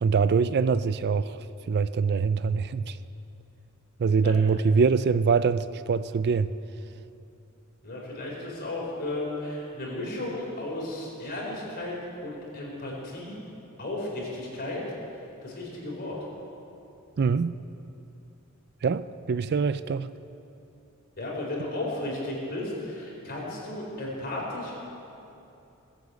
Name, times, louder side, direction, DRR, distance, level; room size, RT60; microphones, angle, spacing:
voice 1, 0.0-1.4 1.7-3.0 4.0-6.5 17.2-17.5 18.8-20.1, right 5 dB, 50° right, 14 dB, 0.4 m, -24 dB
voice 2, 7.8-12.0 12.2-13.4 13.8-14.8 15.4-16.2 21.2-24.7, left 1 dB, 45° left, -3 dB, 4.5 m, -34 dB
19.5 x 8.2 x 8.3 m, 2.8 s
head